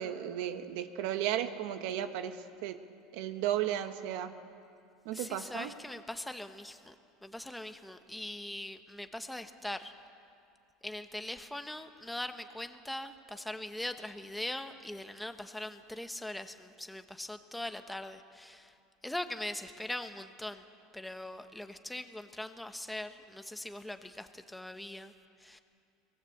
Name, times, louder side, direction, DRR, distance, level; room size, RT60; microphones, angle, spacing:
voice 1, 0.0-2.8 3.1-4.3 5.0-5.7, right 11 dB, 70° right, 9 dB, 1.3 m, -34 dB
voice 2, 5.1-6.9 7.2-9.9 10.8-18.7 19.0-20.6 20.9-25.1 25.4-25.6, left 1 dB, 5° left, 8 dB, 1.2 m, -41 dB
23.5 x 19.5 x 8.1 m, 2.4 s
supercardioid pair, 125°, 0 cm